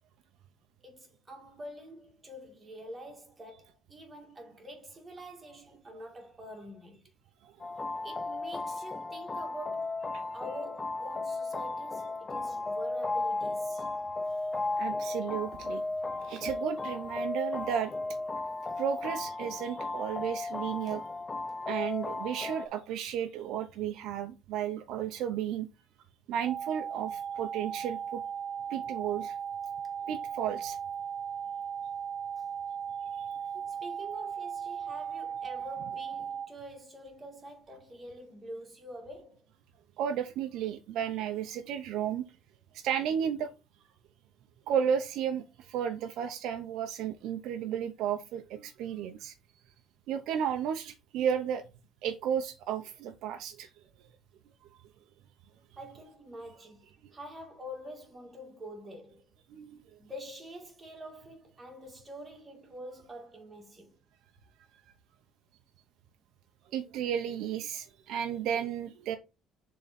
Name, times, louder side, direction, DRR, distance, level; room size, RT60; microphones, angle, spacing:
voice 1, 0.8-7.0 8.0-10.1 10.3-13.9 18.7-18.8 20.8-20.9 33.7-39.4 55.8-59.3 60.0-64.0, equal, 15° right, 1.9 m, -46 dB
sound 1, 7.6-22.7, left 3 dB, 15° left, 0.4 m, -35 dB
voice 2, 14.8-15.8 16.3-17.9 18.8-21.0 21.7-25.7 26.3-28.2 28.7-29.3 30.1-30.8 33.1-33.3 40.0-42.3 42.7-43.5 44.7-49.3 50.1-51.6 52.0-53.7 59.5-59.8 66.7-69.2, right 9 dB, 60° right, 0.8 m, -33 dB
sound 2, 26.5-36.5, right 7 dB, 35° right, 1.2 m, -37 dB
6.8 x 3.8 x 4.2 m
cardioid pair, 175°, 0 cm